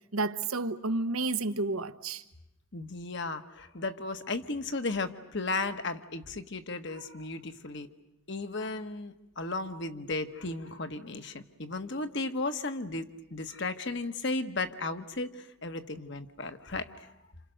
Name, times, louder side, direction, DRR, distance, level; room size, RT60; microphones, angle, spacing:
voice 1, 0.1-2.2, right 3 dB, 85° right, 1.2 m, -31 dB
voice 2, 2.7-7.9 8.3-17.1, left 3 dB, 55° left, 1.4 m, -35 dB
29.5 x 28.0 x 6.5 m
head